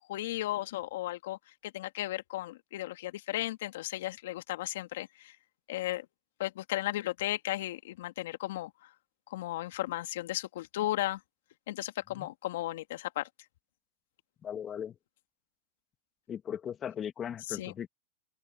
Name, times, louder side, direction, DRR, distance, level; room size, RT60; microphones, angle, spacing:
voice 1, 0.1-5.4 5.7-6.0 6.4-8.7 9.3-11.2 11.7-13.3 17.5-17.7, left 15 dB, 70° left, 2.5 m, -35 dB
voice 2, 14.4-15.0 16.3-17.9, left 9 dB, 30° left, 1.8 m, -38 dB
hypercardioid pair, 115°, 0 cm